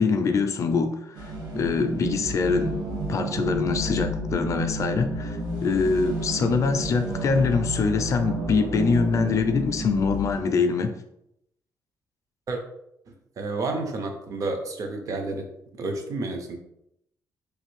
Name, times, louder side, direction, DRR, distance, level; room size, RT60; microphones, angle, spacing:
voice 1, 0.0-2.8 3.1-10.9, left 4 dB, 45° left, 7 dB, 0.4 m, -24 dB
sound 1, 1.1-10.4, right 1 dB, 65° right, 1.3 m, -31 dB
voice 2, 13.4-15.5 15.8-16.6, right 3 dB, 50° right, 5 dB, 0.5 m, -30 dB
3.2 x 2.4 x 3.1 m, 0.78 s
cardioid pair, 145°, 8 cm